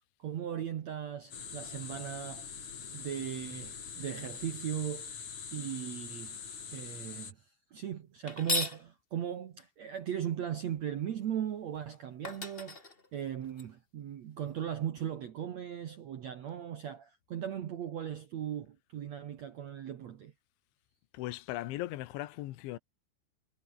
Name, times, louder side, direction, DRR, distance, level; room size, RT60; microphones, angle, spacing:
voice 1, 0.0-2.6 2.9-5.2 5.5-6.4 6.7-7.5 7.7-12.8 13.1-20.3, right 10 dB, 75° right, 1.6 m, -38 dB
sound 1, 1.3-7.3, left 6 dB, 45° left, 4.5 m, -44 dB
sound 2, 8.3-8.8 11.7-11.8 12.2-13.6, left 3 dB, 20° left, 1.4 m, -35 dB
voice 2, 21.1-22.8, left 16 dB, 80° left, 3.6 m, -38 dB
omnidirectional pair, 5.3 m